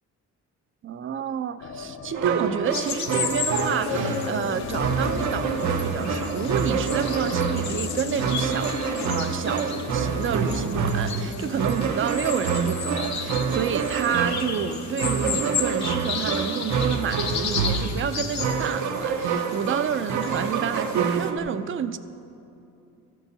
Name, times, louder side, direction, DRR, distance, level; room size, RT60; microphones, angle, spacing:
voice 1, 0.8-22.0, right 8 dB, 45° right, 12 dB, 0.5 m, -29 dB
sound 1, 1.6-17.7 18.0-18.1 18.3-19.1, left 6 dB, 45° left, 0.5 m, -39 dB
sound 2, 2.1-21.4, right 6 dB, 70° right, 0.7 m, -27 dB
sound 3, 2.7-21.3, left 6 dB, 65° left, 1.0 m, -33 dB
13.0 x 4.7 x 6.8 m, 2.7 s
cardioid pair, 90°, 30 cm